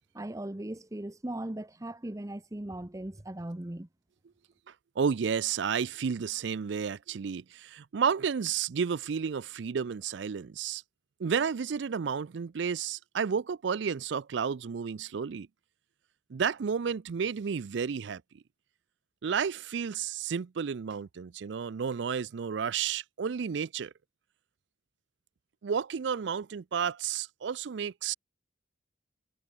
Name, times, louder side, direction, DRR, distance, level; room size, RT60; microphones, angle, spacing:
voice 1, 0.1-3.9, right 1 dB, 15° right, 0.7 m, -38 dB
voice 2, 5.0-10.8 11.2-15.5 16.3-18.2 19.2-23.9 25.6-28.1, right 6 dB, 70° right, 0.4 m, -31 dB
head